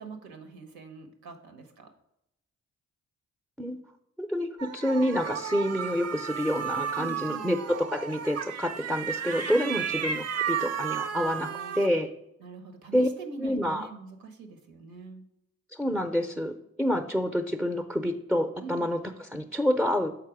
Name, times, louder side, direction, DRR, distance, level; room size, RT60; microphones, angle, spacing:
voice 1, 0.0-1.9 7.0-7.5 9.5-9.8 11.1-11.9 12.4-15.2 18.6-18.9, right 4 dB, 80° right, 6 dB, 1.2 m, -43 dB
voice 2, 4.2-11.5 11.7-12.1 12.9-13.1 13.4-13.9 15.7-19.0 19.3-20.1, equal, ahead, 6 dB, 0.6 m, -28 dB
sound 1, 4.6-11.9, right 7 dB, 45° right, 0.6 m, -33 dB
6.7 x 4.4 x 4.8 m, 0.86 s
supercardioid pair, 50°, 36 cm